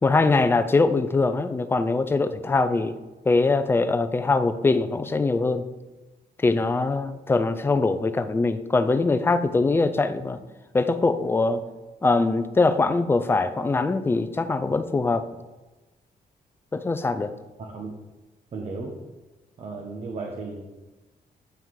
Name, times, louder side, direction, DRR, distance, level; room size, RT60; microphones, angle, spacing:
voice 1, 0.0-3.0 3.2-5.6 6.4-10.4 10.7-11.6 12.0-15.3 16.7-17.3, left 3 dB, 15° left, 10 dB, 0.4 m, -22 dB
voice 2, 18.5-18.9 19.6-20.6, right 3 dB, 40° right, 1 dB, 1.0 m, -34 dB
8.9 x 5.7 x 4.7 m, 1.1 s
cardioid pair, 160°, 15 cm